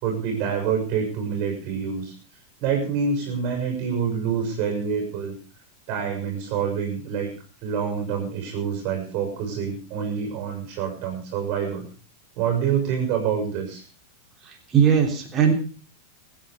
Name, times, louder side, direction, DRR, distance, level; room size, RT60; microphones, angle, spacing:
voice 1, 0.0-2.1 2.6-5.4 5.9-7.3 7.6-11.9 12.4-13.8, right 7 dB, 40° right, 2 dB, 6.5 m, -26 dB
voice 2, 14.5-15.5, right 7 dB, 25° right, 2 dB, 3.5 m, -19 dB
25.5 x 9.5 x 5.1 m, 0.38 s
figure-of-eight pair, 90°, 0 cm